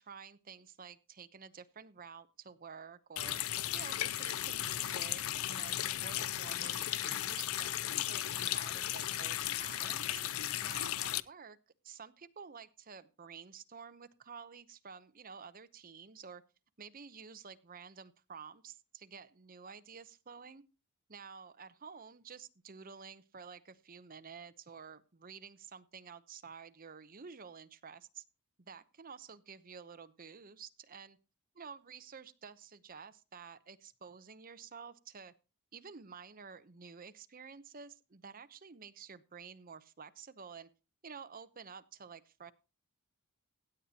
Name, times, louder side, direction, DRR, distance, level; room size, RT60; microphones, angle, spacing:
voice 1, 0.0-3.4 3.7-10.2 10.6-11.6 11.8-16.4 16.8-20.6 21.1-28.2 28.6-31.2 31.6-35.3 35.7-40.7 41.0-42.5, right 6 dB, 40° right, 12 dB, 0.8 m, -51 dB
Water tap faucet, 3.2-11.2, left 13 dB, 70° left, 0.5 m, -36 dB
16.5 x 8.9 x 2.9 m, 0.30 s
head